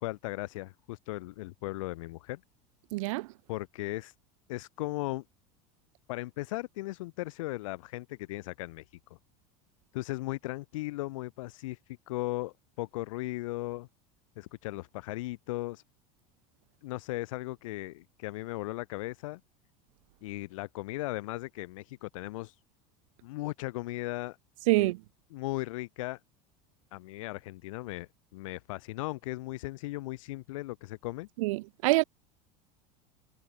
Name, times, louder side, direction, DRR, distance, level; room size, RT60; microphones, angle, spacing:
voice 1, 0.0-2.4 3.5-4.1 4.5-5.2 6.1-9.0 9.9-13.9 14.4-15.8 16.8-19.4 20.2-22.6 23.2-24.4 24.7-24.9 25.3-26.2 26.9-31.3, left 19 dB, 80° left, 1.7 m, -37 dB
voice 2, 2.9-3.3 24.7-25.0 31.4-32.0, right 22 dB, 80° right, 0.4 m, -26 dB
supercardioid pair, 170°, 17 cm